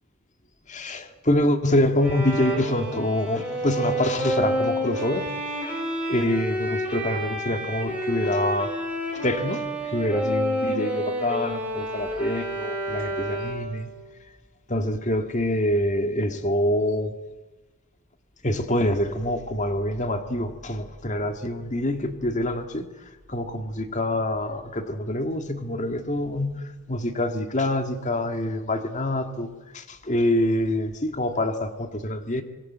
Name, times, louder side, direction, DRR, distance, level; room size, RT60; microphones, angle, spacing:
voice 1, 0.7-5.4 6.1-8.8 9.1-13.9 14.7-17.2 18.4-32.4, left 1 dB, 35° left, 7 dB, 1.9 m, -26 dB
Bowed string instrument, 2.0-13.8, right 1 dB, 5° right, 5.6 m, -29 dB
25.5 x 22.5 x 7.5 m, 1.2 s
head